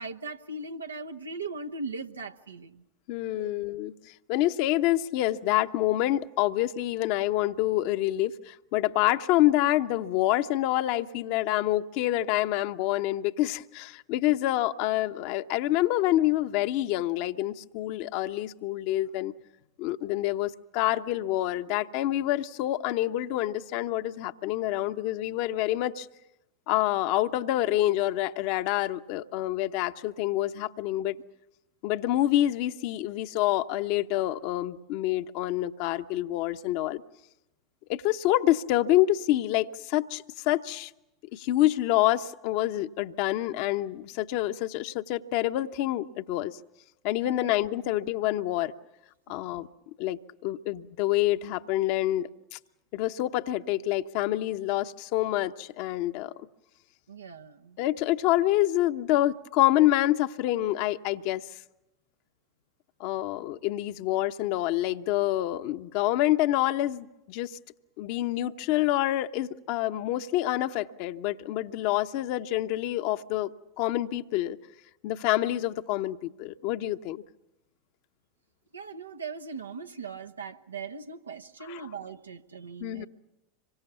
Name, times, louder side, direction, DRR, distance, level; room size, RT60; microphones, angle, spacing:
voice 1, 0.0-2.8 3.3-3.5 47.4-47.5 49.3-49.4 57.1-57.8 78.7-83.1, right 4 dB, 85° right, 1.1 m, -39 dB
voice 2, 3.1-19.3 19.8-26.1 26.7-31.2 31.8-37.0 37.9-40.9 41.3-46.6 47.0-48.7 49.3-49.7 50.0-52.6 52.9-56.3 57.8-61.5 63.0-67.6 68.0-73.5 73.8-74.6 75.0-77.2 81.7-81.8 82.8-83.1, left 15 dB, 55° left, 0.9 m, -27 dB
26.5 x 23.5 x 7.0 m
figure-of-eight pair, 85°, 0 cm